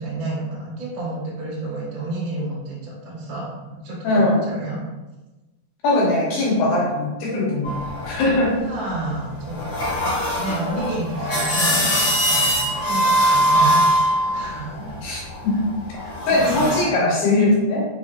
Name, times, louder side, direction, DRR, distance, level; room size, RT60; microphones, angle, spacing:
voice 1, 0.0-4.8 8.6-10.1 10.3-15.0 16.0-16.7, right 2 dB, 90° right, -7 dB, 1.0 m, -30 dB
voice 2, 4.0-4.4 5.8-8.6 15.0-15.6 16.3-17.9, left 2 dB, 80° left, -3 dB, 2.2 m, -20 dB
sound 1, 7.6-8.7 9.3-16.8, equal, 60° left, 1.4 m, -22 dB
6.9 x 2.9 x 2.3 m, 1.1 s
omnidirectional pair, 4.9 m